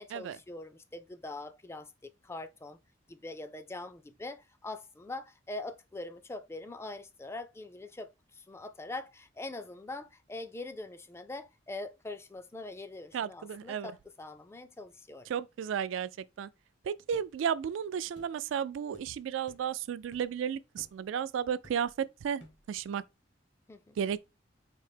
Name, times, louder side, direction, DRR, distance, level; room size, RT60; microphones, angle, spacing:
voice 1, 0.0-2.8 3.1-15.3 23.7-24.0, left 2 dB, 15° left, 0.3 m, -43 dB
voice 2, 13.1-13.9 15.3-16.1 16.4-16.5 16.8-23.0 24.0-24.2, right 8 dB, 90° right, 0.3 m, -33 dB
sound 1, 17.1-17.3 18.2-18.4 18.9-19.1 19.5-19.7 20.1-20.4 20.8-21.0 21.6-22.0 22.4-22.7, equal, 70° left, 1.2 m, -56 dB
4.4 x 2.7 x 3.3 m
head